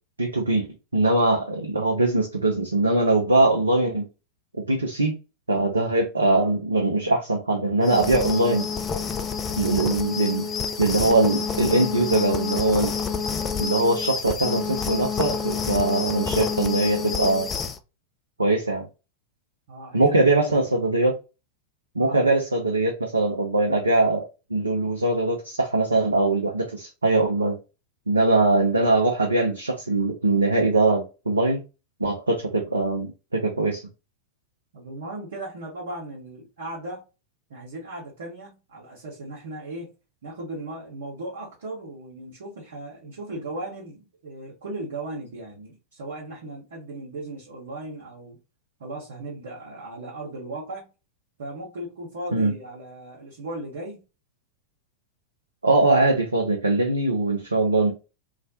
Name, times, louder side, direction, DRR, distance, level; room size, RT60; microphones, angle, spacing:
voice 1, 0.2-0.7 0.9-4.0 4.7-5.2 5.5-8.7 9.6-10.5 10.8-12.9 13.6-17.5 18.4-18.9 19.9-21.2 22.0-27.6 28.1-31.6 32.0-33.8 52.3-52.5 55.6-57.9, right 2 dB, 80° right, 0.4 m, -22 dB
sound 1, 7.8-17.8, left 6 dB, 25° left, 0.3 m, -28 dB
voice 2, 19.7-20.3 20.5-20.7 22.0-22.3 34.7-37.0 37.5-39.9 40.2-48.4 48.8-50.9 51.4-54.0, right 2 dB, 60° right, 0.8 m, -37 dB
2.3 x 2.1 x 2.6 m
figure-of-eight pair, 90°, 0 cm